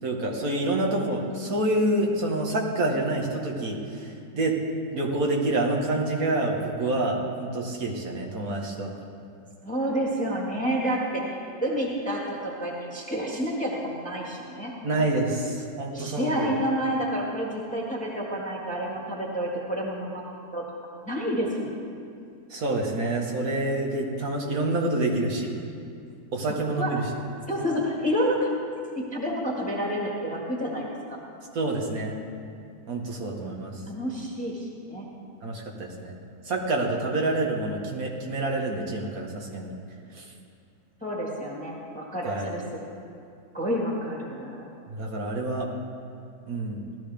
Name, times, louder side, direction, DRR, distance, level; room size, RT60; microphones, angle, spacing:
voice 1, 0.0-4.6 4.9-8.9 14.8-16.5 22.5-25.5 26.3-27.0 31.5-32.2 32.9-33.8 35.4-36.1 36.5-39.7 40.1-40.2 42.2-42.5 44.9-45.7 46.5-46.8, right 2 dB, 65° right, -1 dB, 2.0 m, -27 dB
voice 2, 9.6-11.3 11.6-14.7 15.9-20.2 20.5-20.6 21.0-21.7 26.8-26.9 27.5-28.5 28.9-31.2 33.4-35.1 41.0-42.6 43.5-44.6, equal, 5° left, -3 dB, 1.7 m, -29 dB
17.5 x 13.0 x 3.5 m, 2.4 s
omnidirectional pair, 1.6 m